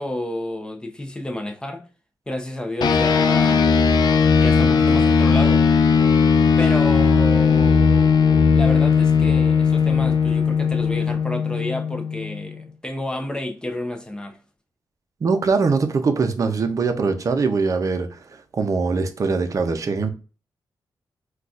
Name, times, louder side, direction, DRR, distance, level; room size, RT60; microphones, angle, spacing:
voice 1, 0.0-1.8 2.3-4.1 4.4-5.7 6.6-14.4, left 1 dB, 10° left, 0.6 m, -30 dB
sound 1, 2.8-12.5, left 5 dB, 65° left, 0.4 m, -17 dB
voice 2, 15.2-18.2 18.6-20.1, right 4 dB, 45° right, 0.5 m, -22 dB
3.9 x 2.3 x 2.4 m
cardioid pair, 100°, 8 cm